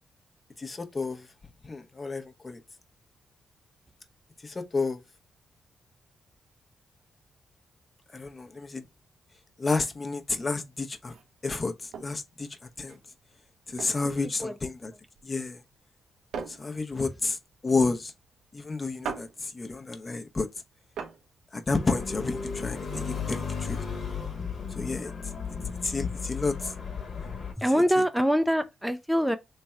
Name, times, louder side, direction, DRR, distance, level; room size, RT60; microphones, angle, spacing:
voice 1, 0.6-1.3 1.6-2.6 4.4-5.0 8.1-8.8 9.6-11.1 11.4-12.5 12.8-13.0 13.7-14.9 15.2-15.6 16.5-17.4 17.6-18.1 18.5-20.5 21.5-23.8 24.7-25.1 25.8-26.7, left 3 dB, 35° left, 0.7 m, -30 dB
sound 1, 10.3-22.5, right 6 dB, 80° right, 0.6 m, -43 dB
sound 2, 21.7-27.5, left 5 dB, 60° left, 1.1 m, -34 dB
voice 2, 27.6-29.4, equal, 5° right, 0.4 m, -24 dB
3.3 x 2.2 x 4.2 m
supercardioid pair, 50°, 0 cm